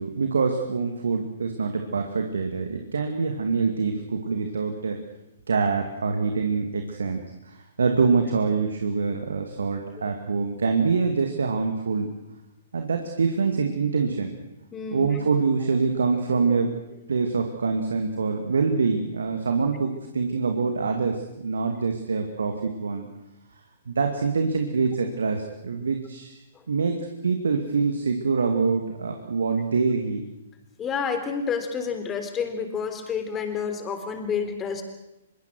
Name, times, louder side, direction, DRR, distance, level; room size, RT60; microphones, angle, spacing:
voice 1, 0.0-5.0 5.5-12.1 12.7-14.3 14.9-16.7 17.1-23.1 23.9-26.4 26.7-27.0 27.2-30.2, right 4 dB, 70° right, 5 dB, 2.4 m, -25 dB
voice 2, 14.7-15.1 30.8-34.8, left 6 dB, 20° left, 7 dB, 3.7 m, -29 dB
25.0 x 23.0 x 6.3 m, 0.93 s
figure-of-eight pair, 120°, 0 cm